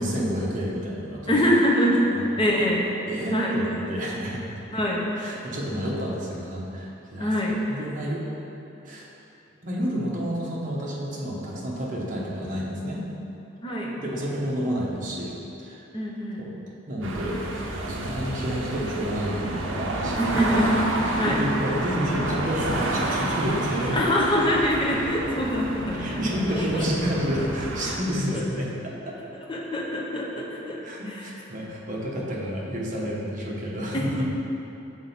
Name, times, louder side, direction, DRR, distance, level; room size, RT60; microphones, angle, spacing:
voice 1, 0.0-1.4 2.5-2.6 3.1-4.6 5.2-7.3 7.7-8.2 8.8-9.1 9.6-13.1 14.0-15.3 15.6-15.8 16.4-16.5 16.9-20.4 21.2-24.0 25.9-29.2 30.8-34.2, equal, 40° right, -4 dB, 0.9 m, -30 dB
voice 2, 1.3-2.8 3.3-3.6 4.7-5.1 7.2-7.6 13.6-14.0 15.9-16.4 20.2-20.8 21.2-21.4 23.9-26.9 28.3-28.4 29.1-31.3 33.9-34.2, equal, 25° left, -3 dB, 0.7 m, -25 dB
sound 1, 17.0-28.0, right 2 dB, 70° right, 0.6 m, -29 dB
6.1 x 4.0 x 4.1 m, 2.9 s
head